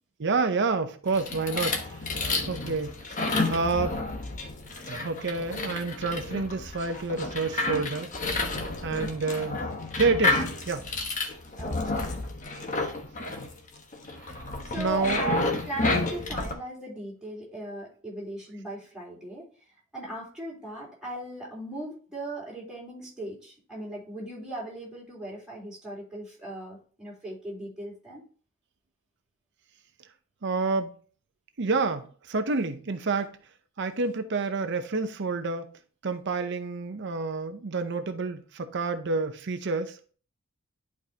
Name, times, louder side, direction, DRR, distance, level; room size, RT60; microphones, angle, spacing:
voice 1, 0.2-2.2 2.5-3.0 3.3-4.0 4.9-8.4 8.8-9.7 10.0-10.9 14.2-14.3 14.8-15.2 30.4-30.9 31.6-33.4 33.8-35.7 36.0-40.0, right 4 dB, 55° right, 0.7 m, -29 dB
sound 1, 1.1-16.5, left 3 dB, 35° left, 1.2 m, -31 dB
voice 2, 11.6-12.0 14.6-19.5 19.9-28.2, right 1 dB, 5° right, 3.5 m, -38 dB
11.0 x 4.8 x 2.8 m
head